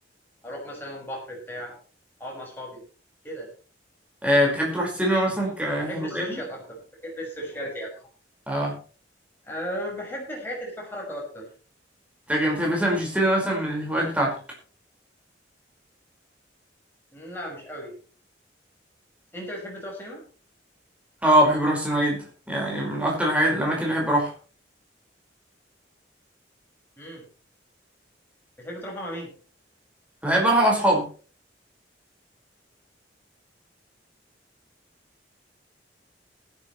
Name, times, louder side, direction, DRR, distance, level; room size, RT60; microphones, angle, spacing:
voice 1, 0.4-1.8 2.2-2.8 3.2-3.5 5.8-8.0 9.5-11.5 17.1-17.9 19.3-20.2 27.0-27.2 28.6-29.3, equal, 10° left, -3 dB, 6.0 m, -36 dB
voice 2, 4.2-6.4 8.5-8.7 12.3-14.4 21.2-24.3 30.2-31.1, right 1 dB, 5° right, -2 dB, 5.2 m, -23 dB
20.5 x 11.0 x 3.2 m, 0.38 s
head